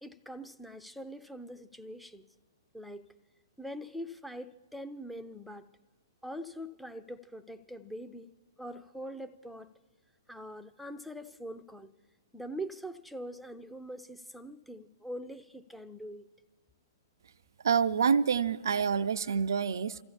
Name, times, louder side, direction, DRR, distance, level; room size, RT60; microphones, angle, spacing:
voice 1, 0.0-2.2 2.7-3.1 3.6-5.7 6.2-8.3 8.6-9.7 10.3-11.9 12.3-16.3, equal, ahead, 0.5 m, -43 dB
voice 2, 17.6-20.0, right 6 dB, 65° right, 0.4 m, -27 dB
28.5 x 15.0 x 2.8 m
figure-of-eight pair, 115°, 2 cm